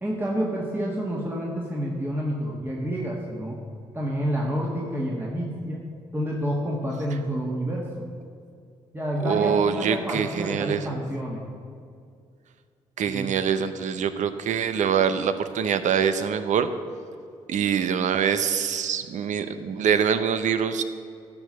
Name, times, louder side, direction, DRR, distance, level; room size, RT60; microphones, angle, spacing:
voice 1, 0.0-3.6 3.9-5.9 6.1-7.9 8.9-11.4 13.1-13.3, equal, 15° right, -3 dB, 1.6 m, -29 dB
voice 2, 9.2-10.9 13.0-16.7 17.5-20.8, right 7 dB, 65° right, 11 dB, 0.6 m, -24 dB
11.5 x 4.7 x 6.3 m, 2.3 s
hypercardioid pair, 50°, 14 cm